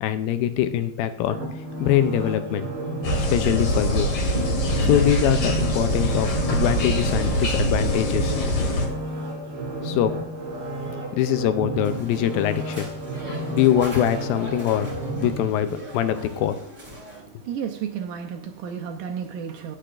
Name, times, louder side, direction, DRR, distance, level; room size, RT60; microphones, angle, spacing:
voice 1, 0.0-1.4 1.8-2.7 3.2-4.1 4.8-8.4 9.8-10.1 11.2-12.9 13.5-14.9 15.2-15.7 15.9-16.6, left 11 dB, 85° left, 10 dB, 2.4 m, -23 dB
sound 1, 1.3-16.3 16.8-16.9, right 1 dB, 40° right, 4.1 m, -33 dB
sound 2, 3.0-8.9, equal, 50° left, 2.5 m, -23 dB
sound 3, 11.8-17.2, right 1 dB, 15° right, 2.9 m, -41 dB
voice 2, 17.2-19.8, right 7 dB, 75° right, 4 dB, 2.1 m, -32 dB
19.5 x 6.6 x 2.5 m, 0.71 s
omnidirectional pair, 4.3 m